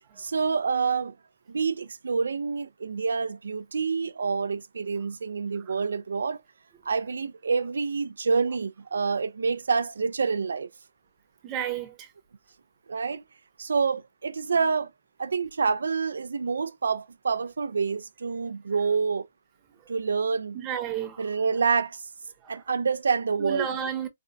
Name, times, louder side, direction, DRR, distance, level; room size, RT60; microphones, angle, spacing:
voice 1, 0.2-1.2 1.5-6.4 6.9-10.7 12.9-13.2 13.6-14.9 15.2-19.3 19.9-20.6 21.2-22.0 22.5-23.7, right 5 dB, 90° right, 0.4 m, -27 dB
voice 2, 11.4-12.1 20.5-21.3 22.4-22.6 23.4-24.1, right 9 dB, 20° right, 0.8 m, -32 dB
4.2 x 2.2 x 2.5 m
hypercardioid pair, 160°, 0 cm